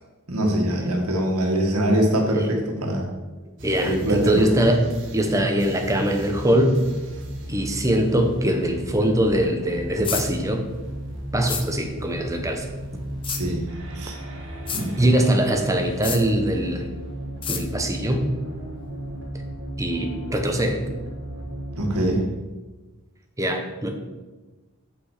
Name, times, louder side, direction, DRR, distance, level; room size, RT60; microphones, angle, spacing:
voice 1, 0.3-3.1 3.8-4.5 13.3-13.7 13.9-14.2 14.7-14.9 21.8-22.2, right 1 dB, 85° right, 1 dB, 1.6 m, -23 dB
voice 2, 3.6-4.8 5.1-6.8 7.5-10.6 11.3-12.7 15.0-16.9 17.5-18.3 19.8-20.8 23.4-23.9, right 1 dB, 15° right, 3 dB, 0.9 m, -22 dB
sound 1, 3.6-22.2, right 1 dB, 60° right, 1.4 m, -35 dB
sound 2, 10.0-10.3 11.5-11.6 13.2-13.4 14.7-14.8 16.0-16.2 17.4-17.6, left 7 dB, 25° left, 0.6 m, -28 dB
7.7 x 5.8 x 4.9 m, 1.2 s
head